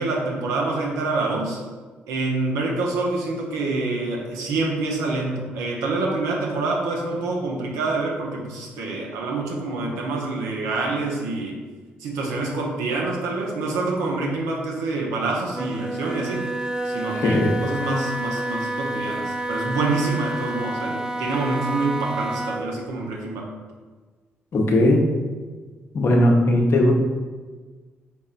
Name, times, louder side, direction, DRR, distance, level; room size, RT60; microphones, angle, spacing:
voice 1, 0.0-1.6 2.1-11.6 12.0-16.5 16.8-23.5, right 3 dB, 80° right, -1 dB, 0.7 m, -26 dB
Wind instrument woodwind instrument, 15.5-22.7, right 1 dB, 15° right, 0.5 m, -29 dB
voice 2, 17.1-17.5 24.5-25.0 25.9-26.9, left 1 dB, 55° left, 1 dB, 0.7 m, -18 dB
4.2 x 3.4 x 2.5 m, 1.4 s
hypercardioid pair, 45°, 5 cm